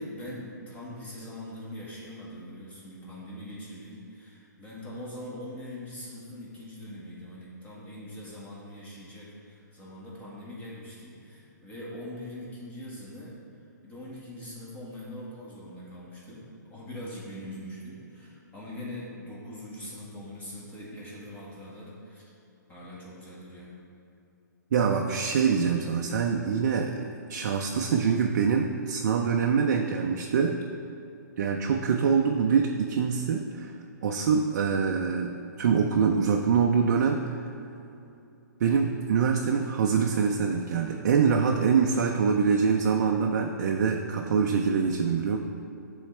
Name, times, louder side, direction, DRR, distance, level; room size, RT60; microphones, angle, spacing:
voice 1, 0.0-13.4 13.8-22.3 22.7-23.7, left 1 dB, 15° left, -6 dB, 1.5 m, -42 dB
voice 2, 24.7-30.6 31.4-33.7 34.0-37.4 38.6-45.4, right 6 dB, 55° right, 2 dB, 0.5 m, -25 dB
9.6 x 3.9 x 3.3 m, 2.7 s
hypercardioid pair, 150°, 10 cm